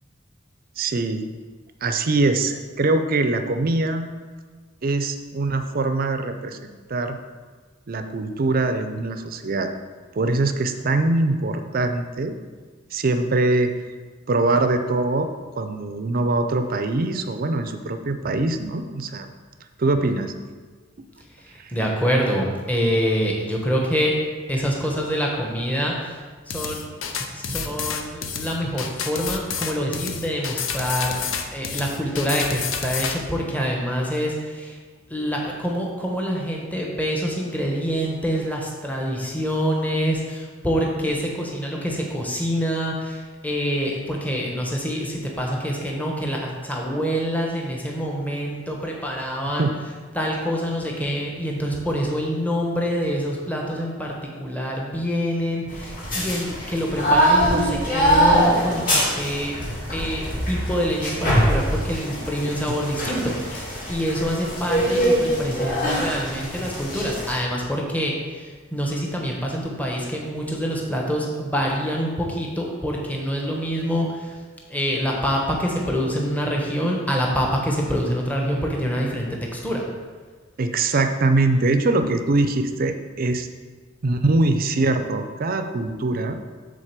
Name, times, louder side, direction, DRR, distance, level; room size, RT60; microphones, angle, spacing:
voice 1, 0.8-1.3 1.8-4.1 4.8-7.2 7.9-9.7 10.1-12.3 12.9-13.7 14.3-15.3 15.6-19.3 19.8-20.3 21.0-21.1 21.6-21.7 49.6-49.7 62.7-62.8 80.6-83.5 84.0-86.4, right 2 dB, 50° right, 8 dB, 0.5 m, -23 dB
voice 2, 21.5-24.2 24.5-26.2 26.5-26.9 27.3-34.8 35.1-49.7 50.1-59.6 59.9-74.4 74.7-79.3 79.5-79.8, equal, 10° left, -1 dB, 0.9 m, -26 dB
sound 1, 26.5-33.2, left 6 dB, 90° left, 0.7 m, -29 dB
sound 2, 55.7-67.3, equal, 45° left, 2.6 m, -23 dB
7.4 x 3.9 x 6.7 m, 1.5 s
head